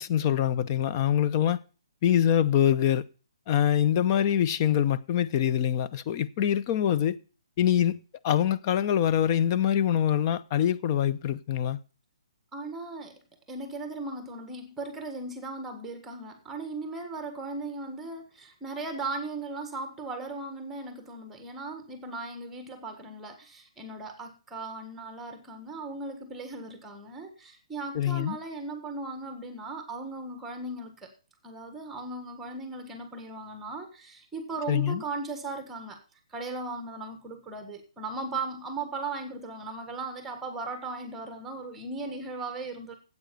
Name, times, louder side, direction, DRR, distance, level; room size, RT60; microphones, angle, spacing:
voice 1, 0.0-1.6 2.0-3.0 3.5-7.2 7.6-11.8 27.9-28.4 34.7-35.0, left 10 dB, 35° left, 0.7 m, -24 dB
voice 2, 12.5-13.2 13.5-31.1 31.4-36.0 36.3-42.9, right 3 dB, 10° right, 1.5 m, -37 dB
9.0 x 8.3 x 6.8 m
hypercardioid pair, 155°, 3 cm